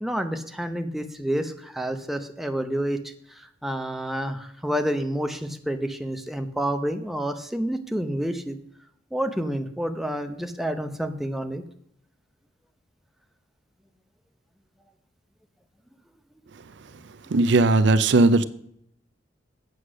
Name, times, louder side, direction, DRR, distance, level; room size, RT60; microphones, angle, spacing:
voice 1, 0.0-3.0 3.4-8.6 9.1-11.6, equal, ahead, 6 dB, 0.7 m, -29 dB
voice 2, 17.3-18.4, right 2 dB, 65° right, 14 dB, 0.5 m, -18 dB
8.2 x 7.9 x 6.3 m, 0.69 s
head